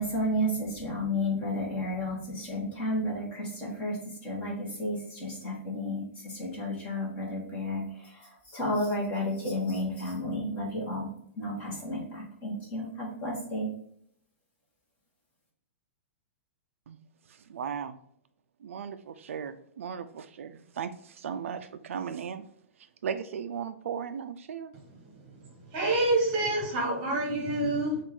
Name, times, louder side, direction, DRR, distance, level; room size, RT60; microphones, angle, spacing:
voice 1, 0.0-4.0 4.2-11.1 11.4-13.7, left 1 dB, 20° left, -3 dB, 1.2 m, -32 dB
voice 2, 17.5-18.0 18.6-22.4 23.0-24.7, right 7 dB, 75° right, 9 dB, 0.4 m, -36 dB
voice 3, 25.7-28.0, right 2 dB, 25° right, 0 dB, 1.2 m, -27 dB
6.0 x 2.5 x 3.5 m, 0.69 s
hypercardioid pair, 180°, 7 cm